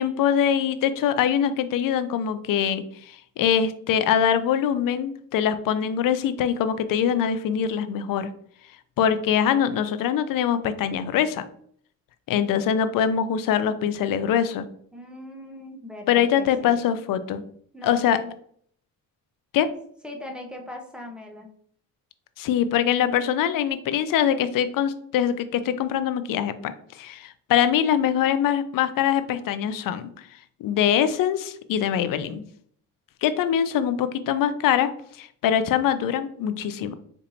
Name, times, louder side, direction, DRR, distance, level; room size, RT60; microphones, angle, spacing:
voice 1, 0.0-8.3 9.0-11.4 12.3-14.6 16.1-17.4 17.8-18.2 19.5-19.7 22.4-30.1 30.6-32.4 33.2-34.9 35.2-36.9, left 9 dB, 60° left, 12 dB, 0.5 m, -23 dB
voice 2, 14.9-16.7 17.7-18.3 20.0-21.5, left 1 dB, ahead, 1 dB, 0.8 m, -39 dB
4.4 x 2.7 x 2.6 m, 0.62 s
supercardioid pair, 75°, 37 cm